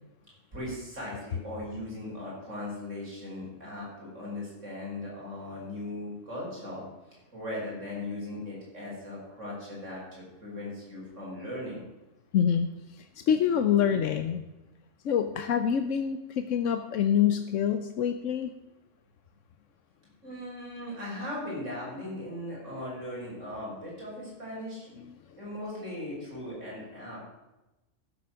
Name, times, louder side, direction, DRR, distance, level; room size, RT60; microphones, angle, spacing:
voice 1, 0.5-6.8 7.3-11.8 20.2-24.9 25.4-27.2, left 1 dB, 75° right, -5 dB, 5.7 m, -38 dB
voice 2, 12.3-12.7 13.2-14.4 15.0-18.5, left 8 dB, 80° left, 8 dB, 1.1 m, -26 dB
15.0 x 7.1 x 6.3 m, 1.0 s
omnidirectional pair, 1.3 m